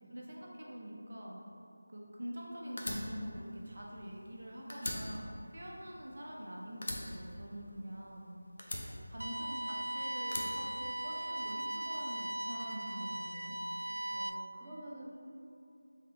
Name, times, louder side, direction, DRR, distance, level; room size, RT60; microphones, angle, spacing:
voice 1, 0.1-1.4 1.9-8.3 8.9-13.6, equal, 65° right, -3 dB, 0.8 m, -45 dB
Fire, 2.8-4.4 4.7-6.4 6.8-8.1 8.6-9.7 10.2-11.4, left 1 dB, 50° left, 0.6 m, -42 dB
sound 1, 9.2-14.3, right 1 dB, 90° right, 0.3 m, -38 dB
voice 2, 14.1-15.0, right 1 dB, 5° right, -13 dB, 0.5 m, -49 dB
3.7 x 3.4 x 3.6 m, 2.6 s
figure-of-eight pair, 170°, 0 cm